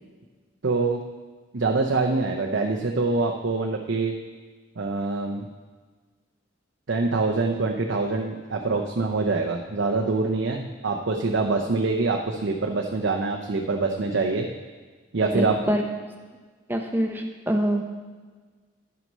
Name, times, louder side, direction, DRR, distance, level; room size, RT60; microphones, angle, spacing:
voice 1, 0.6-1.0 1.5-4.1 4.8-5.5 6.9-14.5 15.1-15.6, right 3 dB, 65° right, 2 dB, 0.6 m, -25 dB
voice 2, 15.3-15.8 16.7-17.9, equal, 10° right, 3 dB, 0.8 m, -25 dB
10.5 x 6.1 x 5.4 m, 1.4 s
head